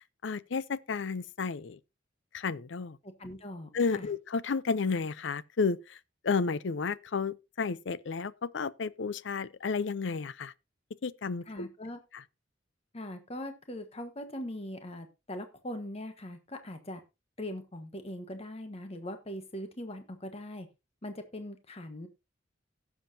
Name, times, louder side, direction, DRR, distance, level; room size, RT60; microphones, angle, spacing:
voice 1, 0.2-1.8 2.3-3.0 3.7-6.0 6.2-10.5 11.0-11.7 12.1-12.2, left 5 dB, 70° left, 0.5 m, -32 dB
voice 2, 3.0-3.7 4.0-4.1 11.5-12.0 12.9-17.0 17.4-20.7 21.0-22.1, left 1 dB, 35° left, 1.3 m, -41 dB
17.0 x 7.3 x 2.7 m
head